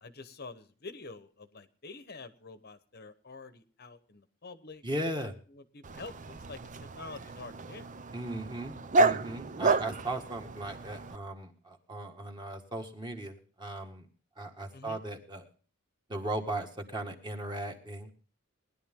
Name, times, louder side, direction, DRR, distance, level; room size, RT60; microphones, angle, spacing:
voice 1, 0.0-4.8 5.1-7.9 14.7-15.0, left 3 dB, 45° left, 11 dB, 1.0 m, -47 dB
voice 2, 4.8-5.3 8.1-14.1 14.4-15.4 16.1-18.1, right 1 dB, 20° right, 3 dB, 1.8 m, -37 dB
Dog, 5.8-11.2, right 3 dB, 35° right, 0.6 m, -31 dB
19.0 x 11.0 x 3.7 m, 0.41 s
head